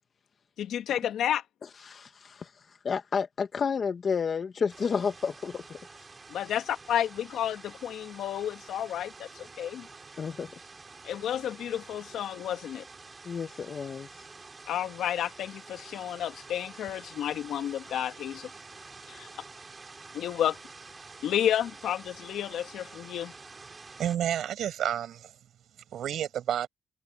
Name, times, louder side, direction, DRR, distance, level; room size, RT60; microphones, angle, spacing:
voice 1, 0.6-1.4 6.3-9.9 11.0-12.8 14.7-18.5 19.1-19.3 20.1-20.6 21.2-23.3, left 10 dB, 75° left, 2.2 m, -31 dB
voice 2, 1.8-5.8 10.2-10.5 13.2-14.3, left 6 dB, 45° left, 1.5 m, -31 dB
sound 1, 4.7-24.2, right 3 dB, 30° right, 7.3 m, -48 dB
voice 3, 24.0-25.3 25.9-26.7, right 10 dB, 70° right, 6.2 m, -30 dB
cardioid pair, 90°, 0 cm